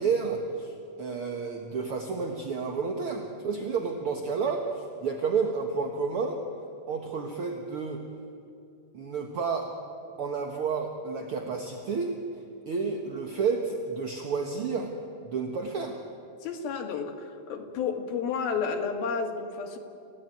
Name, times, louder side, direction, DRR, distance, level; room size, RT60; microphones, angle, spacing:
voice 1, 0.0-6.4 6.9-8.0 8.9-9.7 10.2-12.1 12.7-14.9 15.2-16.0, right 5 dB, 55° right, 3 dB, 1.6 m, -30 dB
voice 2, 16.4-19.8, left 5 dB, 75° left, 3 dB, 3.9 m, -31 dB
28.0 x 17.0 x 9.2 m, 2.6 s
omnidirectional pair, 4.3 m